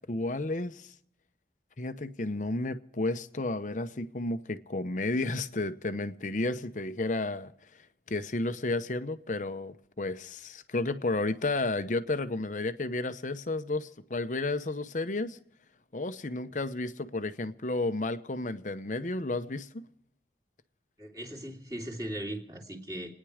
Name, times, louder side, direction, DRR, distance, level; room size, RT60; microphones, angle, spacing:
voice 1, 0.1-0.9 1.8-15.4 15.9-19.9, left 2 dB, 45° left, 0.8 m, -32 dB
voice 2, 21.0-23.1, right 1 dB, 20° right, 2.7 m, -38 dB
29.0 x 10.0 x 5.0 m
head